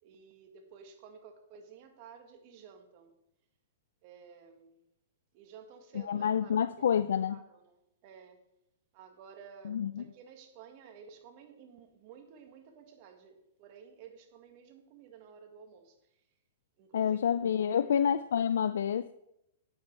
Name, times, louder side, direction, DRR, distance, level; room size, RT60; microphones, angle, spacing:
voice 1, 0.0-3.2 4.0-4.8 5.3-8.5 8.9-16.3 16.8-18.0, right 6 dB, 45° right, 1.7 m, -53 dB
voice 2, 6.1-7.4 9.6-10.0 16.9-19.1, left 8 dB, 80° left, 0.4 m, -28 dB
9.6 x 8.5 x 4.6 m
hypercardioid pair, 140°, 0 cm